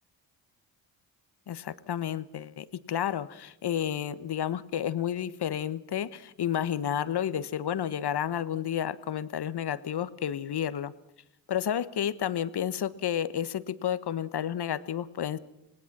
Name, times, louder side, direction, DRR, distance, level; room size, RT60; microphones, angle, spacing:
voice 1, 1.5-10.9 11.5-15.4, left 9 dB, 55° left, 14 dB, 1.4 m, -31 dB
25.5 x 18.5 x 6.0 m, 0.85 s
supercardioid pair, 55°, 47 cm